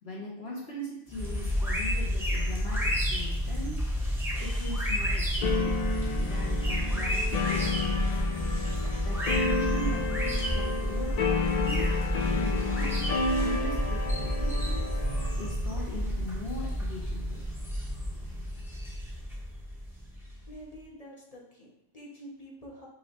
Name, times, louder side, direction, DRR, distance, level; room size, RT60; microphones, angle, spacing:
voice 1, 0.0-3.9 4.4-5.7 6.2-8.3 9.0-12.0 12.3-13.1 13.4-14.8 15.4-17.4, left 1 dB, 60° left, -3 dB, 1.1 m, -40 dB
sound 1, 1.1-20.5, equal, ahead, 0.7 m, -30 dB
sound 2, 5.4-15.5, left 4 dB, 85° left, 0.3 m, -31 dB
voice 2, 20.5-22.9, equal, 35° left, -3 dB, 0.8 m, -47 dB
5.4 x 3.1 x 2.9 m, 0.79 s
omnidirectional pair, 1.3 m